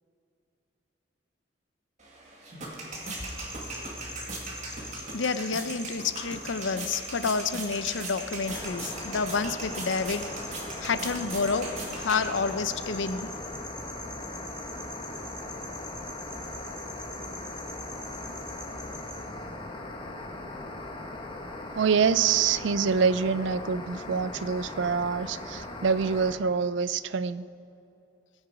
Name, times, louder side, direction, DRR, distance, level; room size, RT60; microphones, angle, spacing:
sound 1, 2.0-12.7, right 2 dB, 40° right, 2.1 m, -40 dB
sound 2, 2.9-19.3, left 1 dB, 5° left, 2.3 m, -43 dB
voice 1, 5.1-10.3 10.8-13.3, left 5 dB, 85° left, 12 dB, 0.6 m, -29 dB
sound 3, 8.5-26.3, left 2 dB, 25° left, 1.1 m, -39 dB
voice 2, 21.7-27.4, right 6 dB, 75° right, 16 dB, 0.4 m, -26 dB
18.0 x 8.9 x 5.0 m, 2.7 s
head